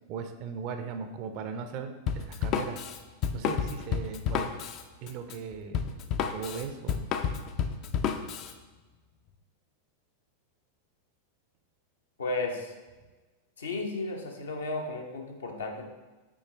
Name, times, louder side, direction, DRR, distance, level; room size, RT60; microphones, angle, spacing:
voice 1, 0.1-2.8 3.3-4.5 5.0-5.9 6.3-7.0, right 6 dB, 45° right, 8 dB, 0.5 m, -38 dB
Drum kit, 2.1-8.5, left 7 dB, 40° left, 0.4 m, -31 dB
voice 2, 12.2-12.7 13.6-15.9, left 2 dB, 70° left, 2 dB, 0.8 m, -34 dB
7.2 x 4.6 x 3.0 m, 1.2 s
figure-of-eight pair, 90°, 0 cm